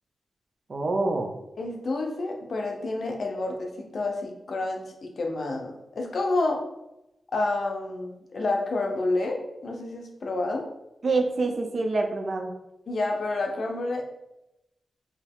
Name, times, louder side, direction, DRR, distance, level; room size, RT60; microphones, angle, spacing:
voice 1, 0.7-1.3 11.0-12.5, right 3 dB, 50° right, 4 dB, 0.6 m, -26 dB
voice 2, 1.6-6.6 7.3-10.7 12.9-14.0, left 2 dB, 60° left, 2 dB, 0.7 m, -29 dB
4.5 x 2.8 x 3.6 m, 0.91 s
wide cardioid pair, 135°, 0 cm